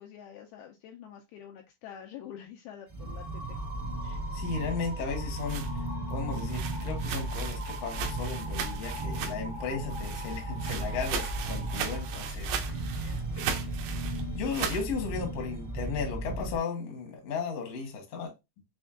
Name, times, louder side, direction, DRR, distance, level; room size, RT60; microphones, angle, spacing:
voice 1, 0.0-3.6 13.1-13.8, left 9 dB, 85° left, 2.3 m, -47 dB
sound 1, 2.9-16.6, right 2 dB, 25° right, 0.8 m, -35 dB
sound 2, 3.0-12.3, equal, 55° right, 0.3 m, -44 dB
voice 2, 4.0-5.7 6.1-13.5 14.3-18.3, left 5 dB, 65° left, 1.5 m, -35 dB
sound 3, 5.1-9.6 9.9-14.9, right 8 dB, 85° right, 2.2 m, -38 dB
6.2 x 3.3 x 2.5 m
omnidirectional pair, 4.8 m